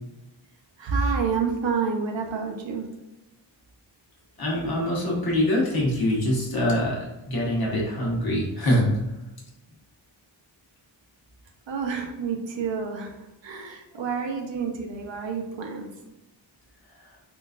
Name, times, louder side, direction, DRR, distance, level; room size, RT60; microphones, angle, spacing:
voice 1, 0.8-2.9 11.7-15.9, right 5 dB, 70° right, 2 dB, 0.7 m, -29 dB
voice 2, 4.4-8.9, left 1 dB, 55° left, -3 dB, 1.0 m, -24 dB
3.7 x 2.5 x 2.4 m, 1.0 s
wide cardioid pair, 135°, 46 cm